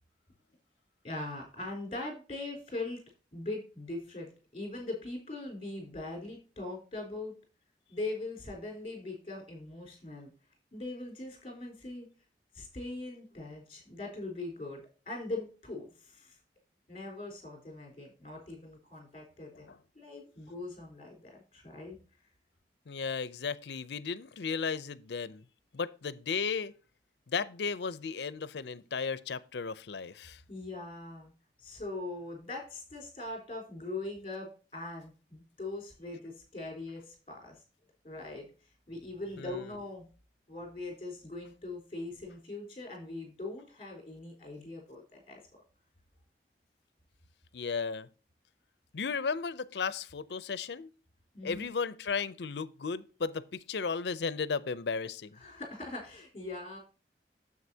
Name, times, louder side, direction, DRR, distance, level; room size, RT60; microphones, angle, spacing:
voice 1, 1.0-3.0 3.3-7.3 7.9-10.3 10.7-12.1 12.5-16.4 16.9-22.0 30.5-31.3 31.6-37.6 38.0-38.5 38.9-40.0 40.5-45.4 51.3-51.7 55.4-56.8, left 2 dB, 30° left, 3.9 m, -41 dB
voice 2, 22.9-25.4 25.7-26.7 27.3-30.4 39.4-39.6 47.5-48.1 48.9-50.9 51.4-55.4, left 5 dB, 75° left, 0.5 m, -35 dB
9.5 x 7.5 x 2.8 m
head